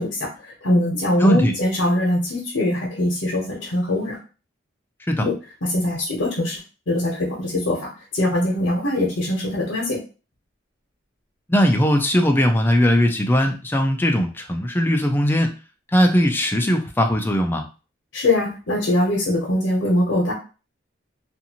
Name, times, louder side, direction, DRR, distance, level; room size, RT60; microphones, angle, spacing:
voice 1, 0.0-4.2 5.2-5.3 5.6-6.6 6.9-10.0 18.1-20.3, left 1 dB, 90° left, -5 dB, 0.9 m, -22 dB
voice 2, 1.2-1.5 5.1-5.3 11.5-15.5 15.9-17.6, equal, 10° left, 4 dB, 0.4 m, -19 dB
2.6 x 2.5 x 2.8 m, 0.33 s
head